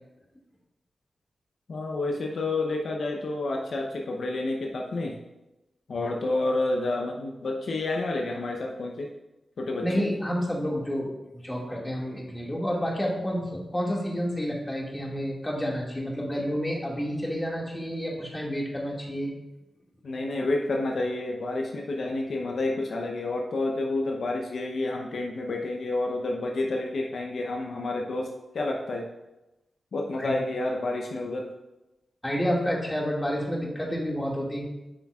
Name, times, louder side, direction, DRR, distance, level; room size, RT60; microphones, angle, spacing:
voice 1, 1.7-5.2 5.9-9.1 9.6-9.9 20.0-29.1 29.9-31.5, left 2 dB, 75° left, 1 dB, 0.7 m, -29 dB
voice 2, 9.8-11.1 11.3-19.3 30.2-30.3 32.2-34.7, equal, 15° left, -2 dB, 2.0 m, -29 dB
8.4 x 5.8 x 2.4 m, 0.99 s
cardioid pair, 50°, 0 cm